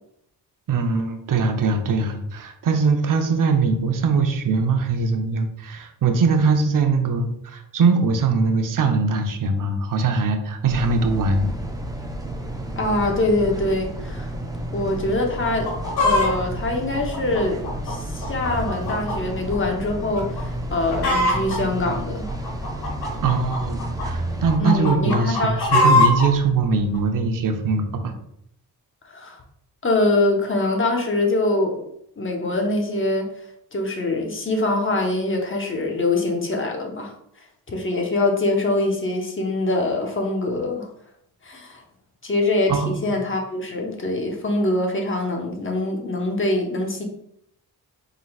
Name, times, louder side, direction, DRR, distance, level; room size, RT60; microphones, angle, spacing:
voice 1, 0.7-11.5 23.2-28.1 42.7-43.0, right 4 dB, 55° right, 5 dB, 0.7 m, -21 dB
sound 1, 10.7-24.6, right 1 dB, 10° right, 0.5 m, -31 dB
voice 2, 12.8-14.3 14.7-15.7 16.0-22.3 24.6-26.0 29.0-29.4 29.8-31.8 32.2-33.3 33.7-37.1 37.7-40.9 41.4-41.8 42.2-47.0, left 2 dB, 30° left, 2 dB, 1.0 m, -24 dB
Chicken rooster, 15.5-16.3 16.9-19.2 19.5-19.6 20.2-20.4 20.7-21.6 22.3-24.0 24.5-26.3 26.9-27.0, left 2 dB, 70° left, 1.5 m, -21 dB
4.1 x 3.9 x 2.3 m, 0.72 s
cardioid pair, 75°, 39 cm